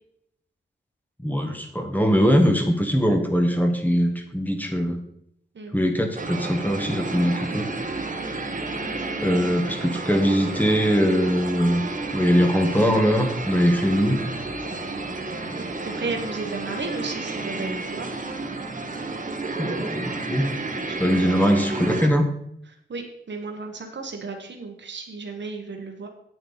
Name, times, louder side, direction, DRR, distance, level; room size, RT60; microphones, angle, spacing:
voice 1, 1.2-5.0 5.7-7.7 9.2-11.8 12.1-14.2 19.6-20.5 21.0-22.3, equal, 10° left, 3 dB, 1.3 m, -21 dB
sound 1, 6.2-22.1, right 2 dB, 40° right, 1.2 m, -31 dB
voice 2, 15.5-18.1 20.9-21.4 22.9-26.1, right 3 dB, 65° right, 3 dB, 1.3 m, -34 dB
8.9 x 8.7 x 4.0 m, 0.71 s
wide cardioid pair, 130°, 20 cm